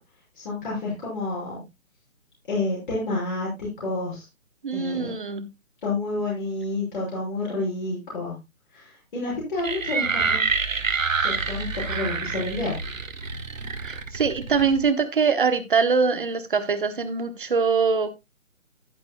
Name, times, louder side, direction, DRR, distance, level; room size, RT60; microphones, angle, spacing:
voice 1, 0.3-1.6 2.5-4.3 4.7-5.1 5.8-8.4 8.7-10.4 11.2-12.7, left 2 dB, 40° left, -4 dB, 5.8 m, -29 dB
voice 2, 4.6-5.5 11.9-12.0 13.8-18.1, right 5 dB, 40° right, 11 dB, 1.2 m, -23 dB
sound 1, 9.6-14.9, right 4 dB, 70° right, 1.7 m, -27 dB
11.0 x 11.0 x 2.2 m, 0.22 s
hypercardioid pair, 170°, 40 cm